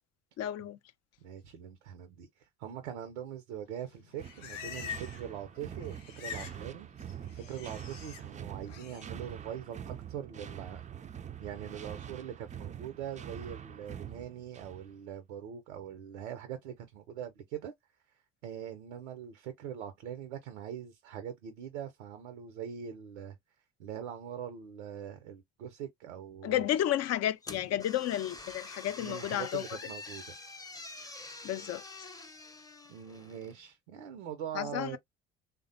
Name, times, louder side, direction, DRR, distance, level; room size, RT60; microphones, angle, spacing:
voice 1, 0.4-0.8 26.4-29.6 31.4-31.8 34.5-35.0, left 12 dB, 45° left, 0.5 m, -32 dB
voice 2, 1.2-10.8 11.4-17.7 18.4-23.4 23.8-26.7 29.0-30.2 32.9-35.0, right 9 dB, 80° right, 0.6 m, -42 dB
Livestock farm animals working animals, 3.9-5.3 5.6-6.6 6.9-8.2 8.7-9.1, left 8 dB, 85° left, 0.6 m, -44 dB
sound 1, 4.2-14.9, right 9 dB, 20° right, 0.4 m, -44 dB
sound 2, 27.4-33.6, left 2 dB, 10° left, 0.7 m, -47 dB
3.3 x 2.1 x 2.6 m
hypercardioid pair, 55°, 36 cm